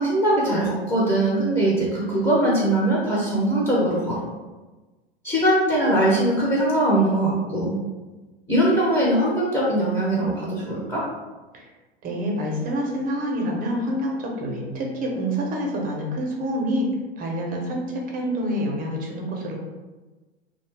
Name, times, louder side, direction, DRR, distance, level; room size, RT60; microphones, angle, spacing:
voice 1, 0.0-4.3 5.2-7.7 8.5-11.0, right 1 dB, 10° left, -6 dB, 0.7 m, -21 dB
voice 2, 12.0-16.9 17.2-17.8 18.1-19.6, equal, 25° right, -1 dB, 0.7 m, -27 dB
2.6 x 2.2 x 3.2 m, 1.2 s
figure-of-eight pair, 95°, 31 cm